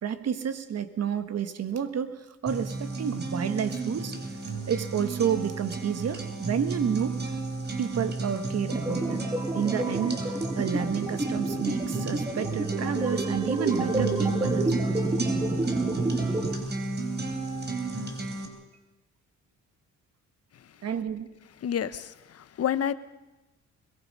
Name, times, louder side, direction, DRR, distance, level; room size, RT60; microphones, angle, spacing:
voice 1, 0.0-4.2 4.7-7.2 7.8-9.2 9.5-14.9 20.8-21.3, right 8 dB, 55° right, 11 dB, 1.6 m, -30 dB
sound 1, 2.5-18.5, right 3 dB, 35° right, 3.8 m, -32 dB
sound 2, 8.7-16.5, right 2 dB, 15° right, 2.4 m, -31 dB
voice 2, 21.6-22.9, left 9 dB, 55° left, 14 dB, 1.0 m, -29 dB
22.0 x 21.5 x 5.5 m, 1.1 s
cardioid pair, 90°, 30 cm